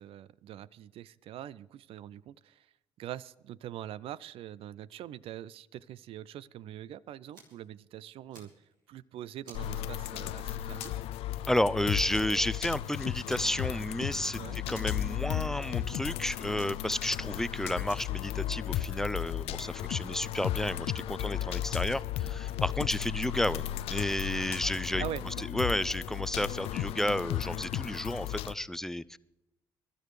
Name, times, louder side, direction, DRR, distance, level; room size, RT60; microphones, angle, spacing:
voice 1, 0.0-2.7 3.0-8.5 8.9-10.9 14.4-14.6 25.0-25.5, right 12 dB, 60° right, 20 dB, 0.5 m, -43 dB
Fire, 7.3-7.7 8.1-9.0 9.4-10.4 10.8-11.2 11.5-11.7 12.1-12.8 13.3-13.9 14.1-14.2 14.7-15.5 16.6-17.4 17.9-18.2, right 2 dB, 90° right, 2.8 m, -53 dB
sound 1, 9.5-28.5, left 12 dB, 65° left, 0.5 m, -35 dB
voice 2, 11.5-25.0 25.4-29.2, left 1 dB, 5° left, 18 dB, 0.5 m, -32 dB
23.5 x 12.5 x 3.2 m, 0.99 s
hypercardioid pair, 50°, 11 cm